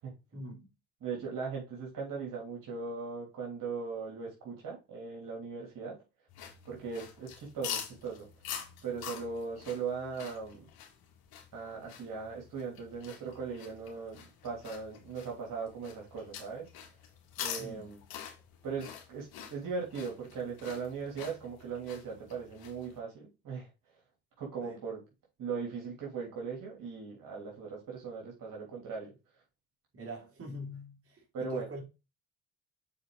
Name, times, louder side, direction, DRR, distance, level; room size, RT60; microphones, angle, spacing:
voice 1, 1.0-6.0 6.6-8.3 8.8-10.7 11.5-16.7 17.4-18.0 18.6-24.0 24.4-25.0 25.4-29.4 31.3-31.7, right 5 dB, 55° right, 2.9 m, -39 dB
sound 1, 6.3-23.0, left 8 dB, 70° left, 1.8 m, -46 dB
voice 2, 29.9-31.8, equal, 35° right, 3.1 m, -43 dB
6.3 x 4.5 x 3.8 m
supercardioid pair, 65°, 38 cm